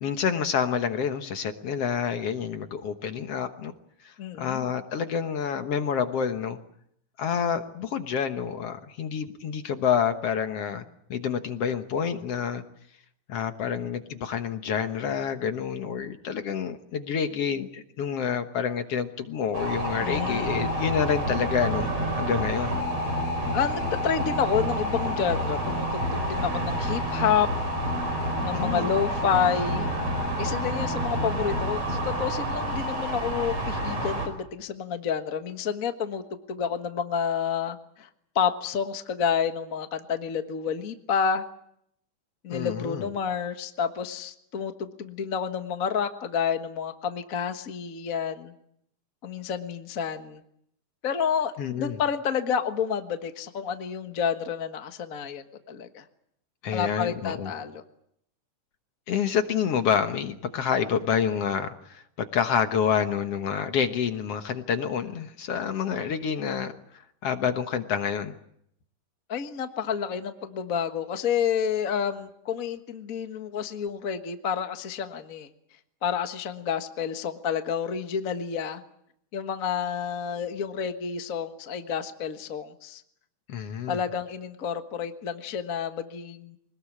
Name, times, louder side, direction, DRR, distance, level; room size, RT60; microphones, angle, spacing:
voice 1, 0.0-3.7 4.0-6.6 7.2-10.9 11.1-12.6 13.3-21.9 22.2-22.8 28.5-28.9 42.5-43.1 51.6-52.0 56.6-57.5 59.1-68.3 83.5-84.0, left 7 dB, 60° left, 8 dB, 2.0 m, -28 dB
voice 2, 4.2-4.7 20.0-20.6 23.5-27.5 28.4-29.9 30.4-36.2 36.5-38.1 38.3-41.5 42.4-48.5 49.2-50.4 51.0-56.0 56.7-57.8 69.3-75.5 76.0-78.8 79.3-83.0 83.9-86.6, left 7 dB, 45° left, 7 dB, 1.2 m, -29 dB
sound 1, 19.5-34.3, equal, 55° right, 5.9 m, -28 dB
24.5 x 20.0 x 8.6 m, 0.73 s
omnidirectional pair, 3.6 m